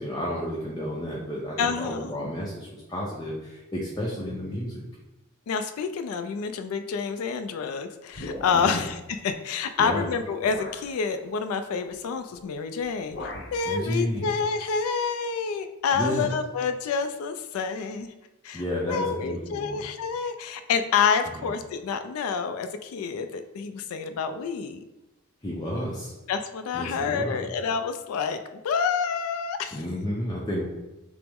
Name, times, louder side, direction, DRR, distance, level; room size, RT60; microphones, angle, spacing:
voice 1, 0.0-4.9 8.5-8.8 9.8-10.1 13.7-14.3 15.9-16.3 18.5-19.8 21.3-21.5 25.4-26.1 26.7-27.5 29.7-30.7, equal, 20° left, -5 dB, 0.5 m, -31 dB
voice 2, 1.6-2.1 5.5-18.1 18.4-24.8 26.3-29.8, left 6 dB, 80° left, 8 dB, 0.3 m, -28 dB
sound 1, 8.1-8.9 9.8-9.9 10.4-10.9 12.3-12.6 12.8-13.6, left 1 dB, 55° left, 0.7 m, -39 dB
6.0 x 2.0 x 3.5 m, 1.0 s
head